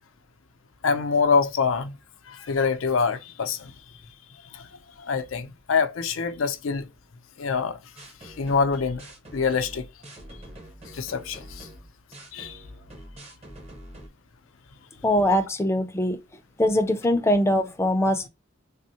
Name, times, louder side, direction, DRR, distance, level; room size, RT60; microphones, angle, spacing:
voice 1, 0.8-2.0 2.3-3.7 4.4-4.7 5.0-6.9 7.4-7.8 8.2-9.0 9.3-9.9 10.9-11.7 12.3-12.6, left 5 dB, 90° left, 0.5 m, -25 dB
sound 1, 8.0-14.1, right 1 dB, 35° right, 0.8 m, -45 dB
voice 2, 15.0-16.2 16.6-18.3, left 1 dB, 15° left, 0.5 m, -22 dB
3.5 x 2.0 x 2.7 m
head